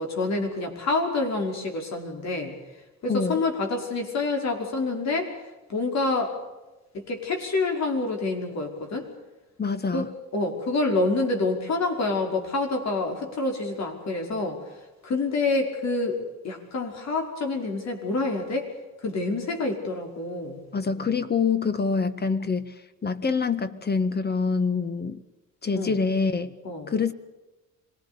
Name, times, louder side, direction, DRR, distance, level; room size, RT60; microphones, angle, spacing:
voice 1, 0.0-2.5 3.0-5.3 5.7-6.4 6.9-9.1 9.9-14.6 15.0-16.2 16.4-18.7 19.0-20.6 25.7-26.0 26.6-26.9, left 3 dB, 60° left, 5.6 m, -27 dB
voice 2, 3.1-3.4 9.6-10.1 20.7-22.7 23.0-25.2 25.6-26.5 26.9-27.1, left 5 dB, 35° left, 1.7 m, -25 dB
25.5 x 20.0 x 7.0 m
cardioid pair, 90°, 30 cm